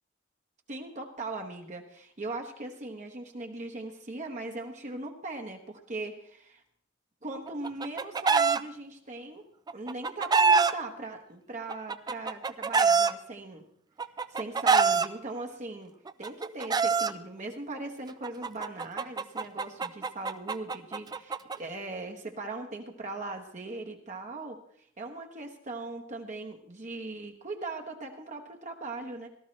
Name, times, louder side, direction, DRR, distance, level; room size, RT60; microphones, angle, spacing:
voice 1, 0.7-6.6 7.2-9.5 9.7-13.6 14.3-15.9 16.2-29.3, right 2 dB, 40° right, 3 dB, 1.1 m, -39 dB
Chicken rooster, 7.5-8.6 9.7-10.7 11.7-13.1 14.0-15.1 16.1-17.1 18.2-21.6, right 5 dB, 20° right, 0.4 m, -24 dB
17.5 x 12.5 x 3.2 m, 0.66 s
head